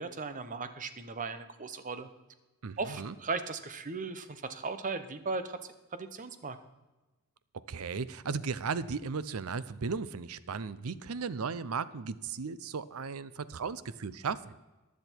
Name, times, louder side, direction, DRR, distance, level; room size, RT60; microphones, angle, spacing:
voice 1, 0.0-2.1 2.8-5.6 5.9-6.6, right 4 dB, 35° right, 11 dB, 0.8 m, -37 dB
voice 2, 2.6-3.1 7.7-14.6, right 5 dB, 70° right, 16 dB, 0.6 m, -36 dB
15.0 x 10.5 x 4.5 m, 1.1 s
head